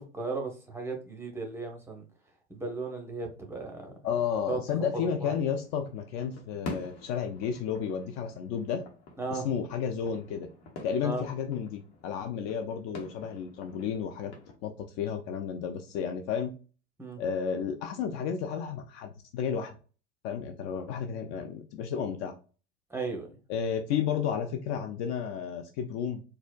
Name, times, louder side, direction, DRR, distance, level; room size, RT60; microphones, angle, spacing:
voice 1, 0.0-2.0 2.5-3.9 4.5-4.6 5.0-5.3 9.2-9.5 11.0-11.2 17.0-17.2 22.9-23.3, right 3 dB, 5° right, 2 dB, 0.9 m, -35 dB
voice 2, 4.0-8.8 9.3-10.5 10.8-14.3 14.6-16.5 17.2-19.8 20.2-22.3 23.5-26.2, left 7 dB, 45° left, 6 dB, 0.4 m, -32 dB
sound 1, 5.4-14.5, left 2 dB, 70° left, 1.0 m, -47 dB
4.1 x 2.2 x 2.3 m, 0.35 s
figure-of-eight pair, 75°, 34 cm